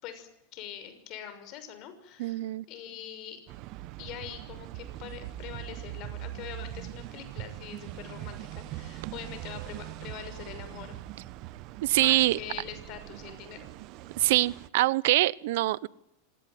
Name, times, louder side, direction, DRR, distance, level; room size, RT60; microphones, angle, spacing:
voice 1, 0.0-3.4 4.0-11.0 11.9-13.7, left 9 dB, 50° left, 10 dB, 6.3 m, -44 dB
voice 2, 2.2-2.6 11.8-12.4 14.2-15.9, right 18 dB, 70° right, 22 dB, 0.8 m, -24 dB
sound 1, 3.5-14.7, right 15 dB, 50° right, 1.2 m, -42 dB
26.0 x 18.0 x 9.4 m, 0.87 s
supercardioid pair, 125°, 0 cm